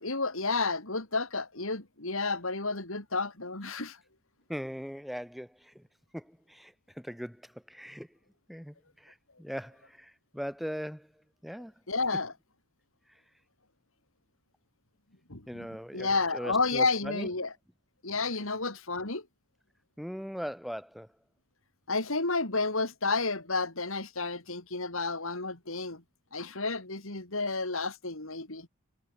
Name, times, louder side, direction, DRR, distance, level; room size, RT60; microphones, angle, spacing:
voice 1, 0.0-4.0 11.9-12.3 15.3-15.7 15.9-17.5 18.0-19.2 21.9-26.0 26.3-28.7, left 3 dB, 65° left, 3.5 m, -31 dB
voice 2, 4.5-5.8 6.1-8.1 8.5-11.1 11.4-11.7 13.1-13.2 15.5-17.3 20.0-21.1, equal, ahead, 7.7 m, -40 dB
head